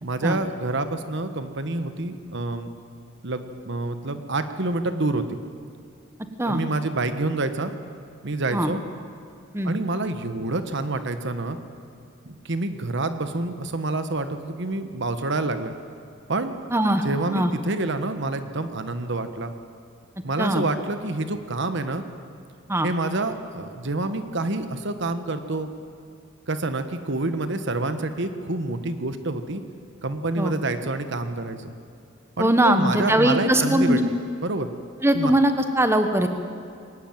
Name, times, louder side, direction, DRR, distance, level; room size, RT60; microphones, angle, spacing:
voice 1, 0.0-2.7 3.2-5.4 6.4-7.7 8.2-8.8 9.6-11.6 12.3-15.7 16.3-16.5 17.0-19.5 20.2-22.0 22.8-25.7 26.5-29.6 30.0-31.7 32.4-34.7 35.1-35.3, right 2 dB, 60° right, 9 dB, 1.3 m, -27 dB
voice 2, 16.7-17.0 17.3-17.5 20.4-20.6 22.7-22.9 30.4-30.5 32.4-34.0 35.0-36.3, right 1 dB, 10° right, 7 dB, 1.3 m, -20 dB
22.0 x 18.5 x 9.0 m, 2.4 s
head